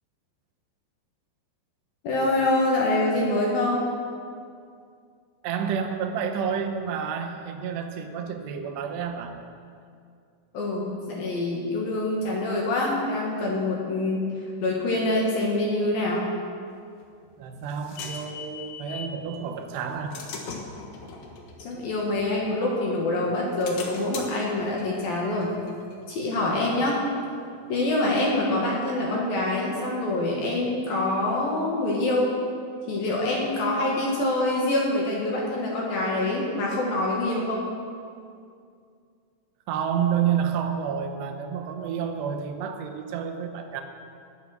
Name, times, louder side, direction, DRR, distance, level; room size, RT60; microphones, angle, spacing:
voice 1, 2.0-3.8 10.5-14.3 14.6-16.3 21.6-25.6 26.1-27.0 27.7-32.3 32.9-37.6, left 2 dB, 60° left, -3 dB, 2.9 m, -25 dB
voice 2, 5.4-9.4 17.4-20.2 39.7-43.8, right 7 dB, 75° right, 4 dB, 2.7 m, -29 dB
sound 1, 17.0-19.2 19.7-22.8 23.3-26.7, left 4 dB, 80° left, 1.7 m, -41 dB
20.0 x 8.4 x 6.4 m, 2.3 s
omnidirectional pair, 5.8 m